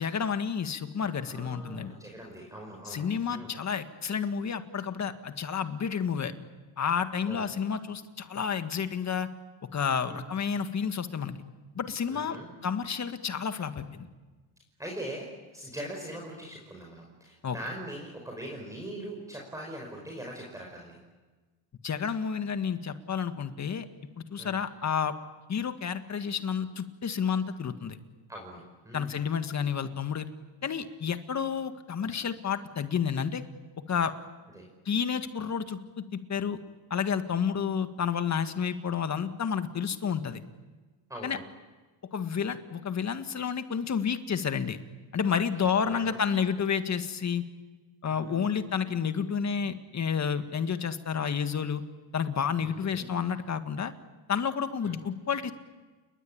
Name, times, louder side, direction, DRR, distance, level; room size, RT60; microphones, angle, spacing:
voice 1, 0.0-1.9 2.9-6.3 6.8-9.3 9.7-11.3 11.8-12.4 12.6-14.1 17.4-17.6 21.8-23.9 24.3-25.1 25.5-28.0 28.9-30.3 30.6-33.5 33.9-34.1 34.9-36.0 36.3-36.6 36.9-40.4 41.2-41.4 42.1-44.8 45.1-47.4 48.0-51.8 52.1-53.9 54.3-55.5, left 7 dB, 35° left, 9 dB, 1.8 m, -30 dB
voice 2, 1.2-3.5 7.3-7.6 10.1-10.2 12.1-12.5 14.8-21.0 24.4-24.6 28.3-29.1 34.5-34.7 41.1-41.4 45.5-46.5 48.1-48.6 52.6-53.1 54.8-55.0, right 1 dB, 5° right, -1 dB, 5.4 m, -42 dB
29.5 x 22.0 x 8.7 m, 1.3 s
cardioid pair, 115°, 48 cm